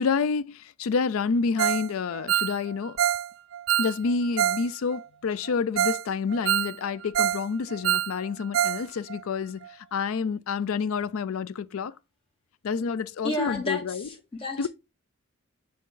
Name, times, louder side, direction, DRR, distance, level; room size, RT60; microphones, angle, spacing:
voice 1, 0.0-3.0 3.8-11.9 12.6-14.1 14.6-14.7, left 5 dB, 80° left, 0.4 m, -28 dB
Ringtone, 1.6-1.9 2.1-4.6 4.9-5.0 5.5-5.6 5.8-6.0 6.3-7.4 7.7-8.8 9.1-9.2 9.6-9.7, right 11 dB, 60° right, 0.3 m, -26 dB
voice 2, 13.2-14.7, left 1 dB, 25° left, 2.5 m, -32 dB
7.5 x 3.5 x 3.8 m
head